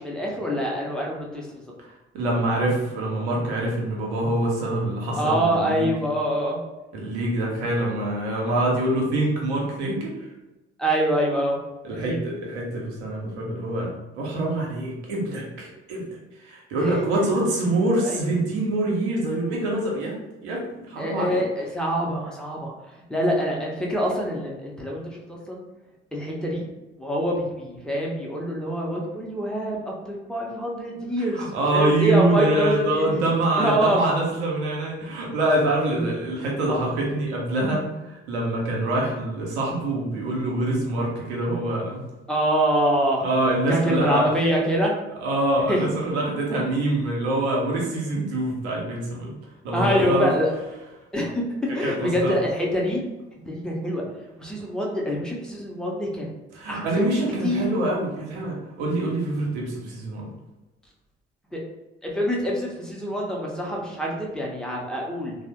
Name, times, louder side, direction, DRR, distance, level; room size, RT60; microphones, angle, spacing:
voice 1, 0.0-1.6 5.2-6.6 10.8-11.6 12.0-12.2 16.8-16.9 17.2-17.3 18.0-18.2 21.0-22.7 23.1-25.6 26.1-26.7 27.0-33.0 33.6-34.0 35.8-36.1 36.7-36.9 42.3-43.3 43.7-44.9 45.7-45.8 49.7-50.5 51.1-51.4 51.7-53.0 53.5-54.0 54.4-56.3 56.7-57.1 57.4-57.7 61.5-61.6 62.0-65.4, equal, ahead, -2 dB, 0.8 m, -25 dB
voice 2, 2.1-5.9 6.9-10.3 11.8-16.1 16.4-21.5 31.2-42.0 43.2-44.3 45.2-49.3 49.6-50.3 51.8-52.3 56.5-60.3 63.0-63.2, right 1 dB, 75° right, -2 dB, 0.7 m, -25 dB
3.3 x 2.0 x 2.9 m, 1.1 s
figure-of-eight pair, 45°, 33 cm